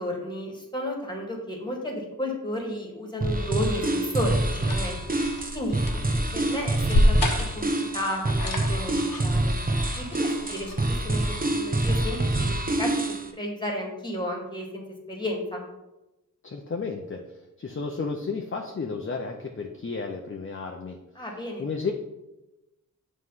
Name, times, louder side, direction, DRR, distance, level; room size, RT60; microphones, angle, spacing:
voice 1, 0.0-5.0 5.5-7.2 7.5-9.0 9.2-9.5 10.0-11.2 11.5-13.0 13.3-15.7 21.2-21.7, left 1 dB, 15° left, 0 dB, 1.7 m, -33 dB
sound 1, 3.2-13.3, right 1 dB, 25° right, 0.7 m, -26 dB
sound 2, 4.4-11.2, left 1 dB, 80° left, 1.1 m, -29 dB
voice 2, 16.4-21.0 21.6-21.9, left 4 dB, 40° left, 3 dB, 0.6 m, -33 dB
7.6 x 3.2 x 5.6 m, 0.97 s
wide cardioid pair, 70°, 34 cm